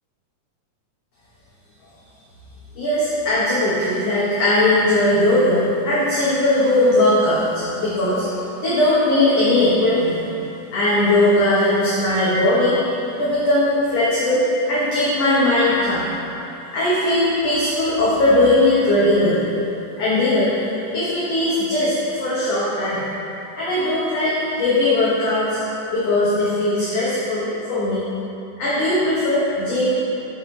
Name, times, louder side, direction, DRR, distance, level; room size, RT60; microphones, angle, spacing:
voice 1, 2.8-8.3 8.6-10.2 10.7-16.1 16.7-19.4 20.0-20.5 20.9-23.0 23.5-25.6 25.9-28.1 28.6-29.9, left 1 dB, 55° left, -9 dB, 2.0 m, -19 dB
7.0 x 6.4 x 5.3 m, 2.9 s
omnidirectional pair, 4.0 m